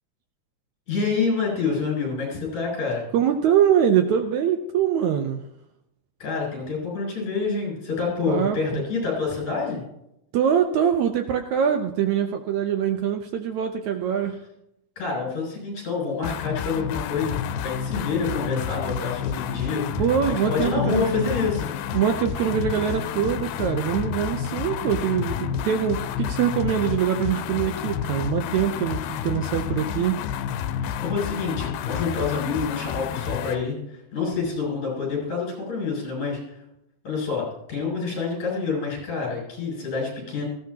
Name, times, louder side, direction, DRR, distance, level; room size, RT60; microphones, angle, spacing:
voice 1, 0.9-3.0 6.2-9.8 15.0-20.0 20.4-21.7 30.8-36.6 37.0-40.4, left 4 dB, 50° left, -3 dB, 8.1 m, -27 dB
voice 2, 3.1-5.4 8.3-8.9 10.3-14.4 20.0-21.3 21.9-30.2, right 9 dB, 75° right, 6 dB, 1.7 m, -23 dB
sound 1, 16.2-33.6, left 9 dB, 90° left, 2.5 m, -30 dB
19.0 x 16.0 x 2.9 m, 0.83 s
omnidirectional pair, 4.1 m